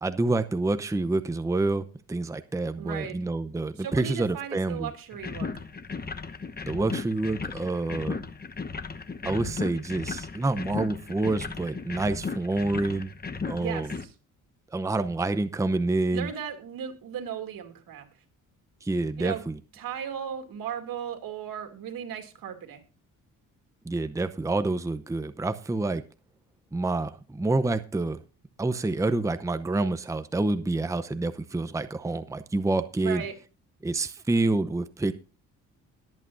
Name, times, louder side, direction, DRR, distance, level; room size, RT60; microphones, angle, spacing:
voice 1, 0.0-4.9 6.7-8.2 9.2-13.1 13.5-13.9 14.7-16.3 18.8-19.6 23.9-26.0 26.7-28.2 28.6-33.2 33.8-35.1, right 2 dB, 10° right, 10 dB, 0.7 m, -27 dB
voice 2, 2.8-3.2 3.8-5.6 13.6-14.1 16.1-18.1 19.2-19.4 19.7-22.8 33.0-33.3, right 8 dB, 80° right, 5 dB, 2.6 m, -36 dB
sound 1, 5.1-14.0, left 4 dB, 25° left, 1.0 m, -36 dB
21.5 x 8.5 x 2.6 m, 0.34 s
cardioid pair, 90°, 34 cm